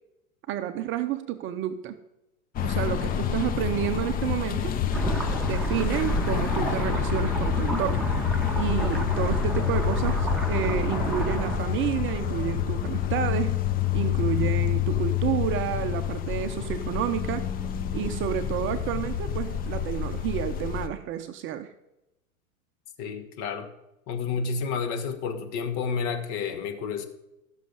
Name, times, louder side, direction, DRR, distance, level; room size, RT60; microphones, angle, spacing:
voice 1, 0.5-2.0 2.6-4.7 5.4-8.1 8.6-13.6 13.9-17.5 17.9-21.7, right 11 dB, 30° right, 8 dB, 0.7 m, -30 dB
sound 1, 2.5-20.9, left 10 dB, 20° left, 0.6 m, -28 dB
sound 2, 4.9-11.6, right 1 dB, ahead, 1.6 m, -30 dB
sound 3, 9.2-9.3 9.8-10.1 10.4-10.7 11.0-11.7 12.1-12.5, left 5 dB, 65° left, 2.1 m, -46 dB
voice 2, 23.0-23.7 24.1-27.1, left 5 dB, 40° left, 8 dB, 1.6 m, -30 dB
14.5 x 6.5 x 5.4 m, 0.92 s
hypercardioid pair, 105°, 42 cm